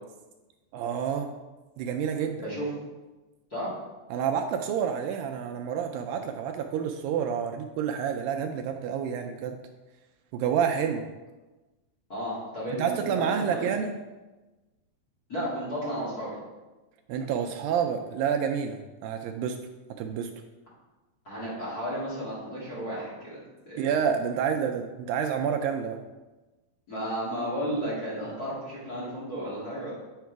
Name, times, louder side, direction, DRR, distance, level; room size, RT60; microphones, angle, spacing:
voice 1, 0.7-1.3 1.8-2.4 4.1-9.5 10.3-11.0 12.7-14.0 17.1-19.6 20.0-20.3 23.8-26.0, right 7 dB, 80° right, 5 dB, 2.2 m, -29 dB
voice 2, 12.1-13.7 15.3-16.4 21.2-23.8 26.9-29.9, equal, 30° left, -8 dB, 2.0 m, -33 dB
9.2 x 4.7 x 4.6 m, 1.2 s
omnidirectional pair, 4.2 m